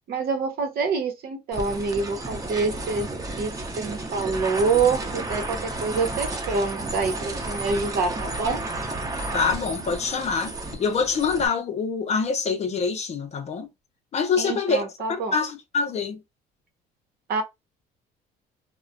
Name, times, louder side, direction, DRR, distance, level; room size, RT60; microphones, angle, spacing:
voice 1, 0.1-3.1 3.4-8.6 14.4-15.3 17.3-17.4, right 4 dB, 65° right, 0.8 m, -26 dB
sound 1, 1.5-11.5, right 2 dB, 20° right, 0.7 m, -32 dB
voice 2, 9.3-13.7 14.1-16.2, left 5 dB, 40° left, 0.6 m, -25 dB
2.3 x 2.1 x 2.5 m
cardioid pair, 110°, 17 cm